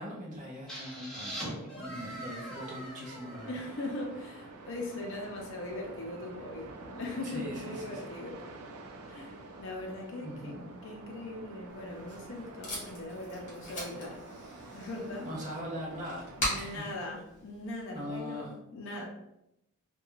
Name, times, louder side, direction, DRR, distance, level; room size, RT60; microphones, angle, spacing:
voice 1, 0.0-3.6 7.2-8.1 10.2-10.6 15.2-16.3 16.5-17.0 17.9-18.5, equal, 35° right, -4 dB, 0.6 m, -41 dB
sound 1, 0.7-4.4, right 1 dB, 5° left, 0.6 m, -42 dB
sound 2, 3.3-16.4, right 2 dB, 80° right, 0.4 m, -48 dB
voice 2, 3.4-8.4 9.1-10.6 10.8-14.2 14.7-15.3 15.9-16.0 16.4-19.1, left 2 dB, 55° left, 0 dB, 0.5 m, -40 dB
Packing tape duct tape, 11.7-18.2, equal, 35° left, 1.1 m, -41 dB
2.4 x 2.2 x 3.0 m, 0.85 s
head